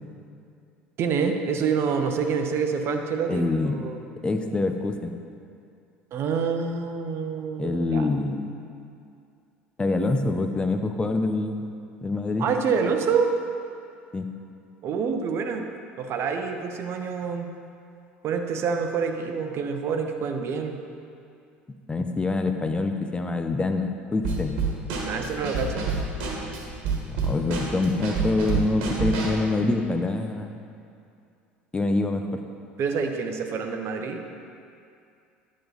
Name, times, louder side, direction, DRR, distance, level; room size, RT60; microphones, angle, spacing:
voice 1, 1.0-4.1 6.1-8.1 12.4-13.3 14.8-15.7 16.0-17.5 18.2-20.8 25.0-25.9 32.8-34.2, right 6 dB, 45° right, 5 dB, 0.9 m, -27 dB
voice 2, 3.3-3.8 4.2-5.1 7.6-8.6 9.8-11.7 12.0-12.5 14.1-14.3 21.9-24.6 27.2-30.6 31.7-32.4, left 2 dB, 15° left, 6 dB, 0.8 m, -25 dB
Drum kit / Snare drum, 24.2-29.5, right 4 dB, 60° right, 1.5 m, -28 dB
10.5 x 7.4 x 4.0 m, 2.5 s
figure-of-eight pair, 65°, 6 cm